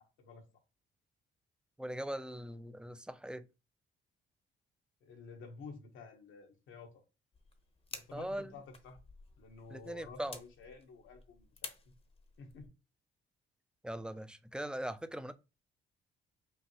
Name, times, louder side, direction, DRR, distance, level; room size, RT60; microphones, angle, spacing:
voice 1, 1.8-3.4 8.1-8.5 9.7-10.4 13.8-15.3, right 1 dB, 5° right, 0.4 m, -40 dB
voice 2, 5.0-6.9 7.9-9.0 9.4-11.7 12.4-12.7, left 4 dB, 85° left, 1.2 m, -51 dB
sound 1, 7.3-12.7, left 4 dB, 30° left, 0.8 m, -52 dB
5.4 x 2.6 x 2.9 m
cardioid pair, 90°, 20 cm